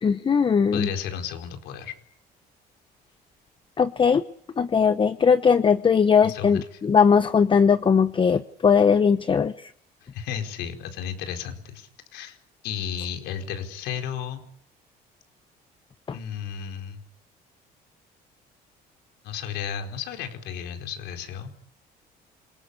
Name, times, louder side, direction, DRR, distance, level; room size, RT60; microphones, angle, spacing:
voice 1, 0.0-0.9 3.8-4.2 4.6-9.7 16.1-16.2, left 6 dB, 30° left, 11 dB, 1.0 m, -19 dB
voice 2, 0.7-1.9 6.2-6.6 10.0-12.4 12.6-14.4 16.1-17.0 19.2-21.5, left 8 dB, 85° left, 6 dB, 4.6 m, -33 dB
27.5 x 20.0 x 8.4 m, 0.64 s
cardioid pair, 110°, 17 cm